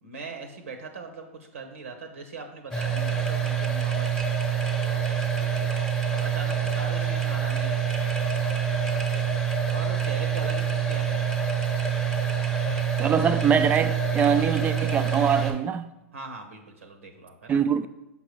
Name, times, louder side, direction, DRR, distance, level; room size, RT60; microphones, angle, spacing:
voice 1, 0.0-13.0 16.1-17.6, right 4 dB, 80° right, 0.9 m, -42 dB
sound 1, 2.7-15.5, right 7 dB, 10° left, 0.9 m, -26 dB
voice 2, 13.0-15.9 17.5-17.9, right 7 dB, 20° right, 0.4 m, -23 dB
5.7 x 5.4 x 3.1 m
hypercardioid pair, 110°, 7 cm